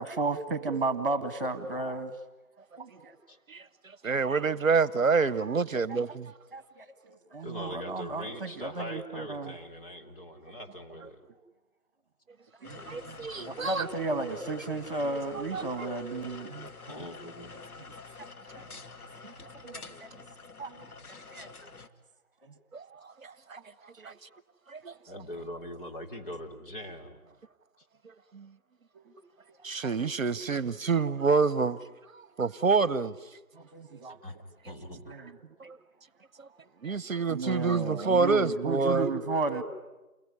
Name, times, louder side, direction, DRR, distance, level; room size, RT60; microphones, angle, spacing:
voice 1, 0.0-2.2 2.8-3.2 5.9-6.0 6.5-9.6 12.6-17.1 18.6-18.7 19.6-20.1 20.6-20.8 21.3-21.7 22.4-22.5 24.0-24.1 33.5-34.2 35.1-35.3 36.9-37.0 37.3-39.6, right 3 dB, 35° right, 1.8 m, -34 dB
voice 2, 4.0-6.3 12.9-13.9 15.5-15.6 19.6-19.8 22.7-23.6 24.0-24.1 24.7-24.9 28.3-28.5 29.6-31.8 32.1-33.2 36.8-39.1, right 4 dB, 65° right, 0.9 m, -27 dB
voice 3, 7.4-11.2 16.9-17.5 25.1-27.2 34.2-34.4 34.7-35.1, left 1 dB, 35° left, 3.5 m, -42 dB
sound 1, 12.6-21.9, left 4 dB, 80° left, 2.0 m, -47 dB
29.0 x 21.5 x 9.6 m
figure-of-eight pair, 165°, 44 cm